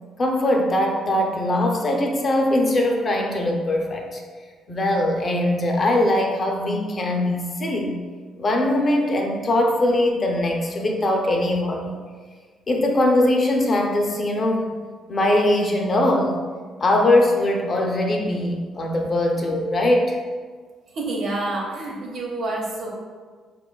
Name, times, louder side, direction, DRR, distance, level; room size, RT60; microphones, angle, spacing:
voice 1, 0.2-4.2 4.7-8.0 8.4-11.9 12.7-14.8 15.1-16.4 16.8-20.2, left 1 dB, 40° left, 2 dB, 0.5 m, -21 dB
voice 2, 20.9-22.9, right 2 dB, 70° right, -3 dB, 0.8 m, -28 dB
4.5 x 2.3 x 2.3 m, 1.5 s
supercardioid pair, 70°, 0 cm